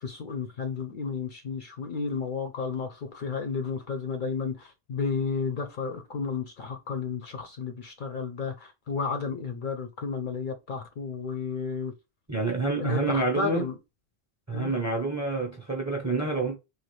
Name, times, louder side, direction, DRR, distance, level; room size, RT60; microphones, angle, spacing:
voice 1, 0.0-11.9 12.8-13.8 14.5-14.7, left 5 dB, 55° left, 0.6 m, -32 dB
voice 2, 12.3-13.7 14.5-16.6, right 3 dB, 20° right, 0.6 m, -28 dB
3.2 x 2.4 x 3.0 m
omnidirectional pair, 1.1 m